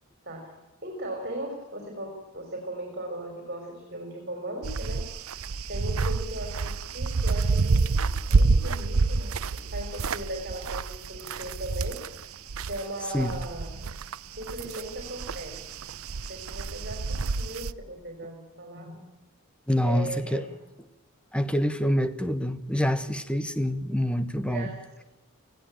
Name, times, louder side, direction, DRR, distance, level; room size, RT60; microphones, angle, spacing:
voice 1, 0.8-5.1 5.7-12.0 12.7-13.9 14.4-15.6 16.3-19.0 19.8-20.5 24.5-25.0, right 1 dB, 45° right, 2 dB, 4.4 m, -38 dB
sound 1, 4.6-12.8 13.1-17.7, right 3 dB, 75° right, 0.7 m, -28 dB
voice 2, 19.7-20.5 21.3-24.7, equal, 5° left, 12 dB, 1.0 m, -26 dB
19.5 x 16.0 x 8.9 m, 1.0 s
head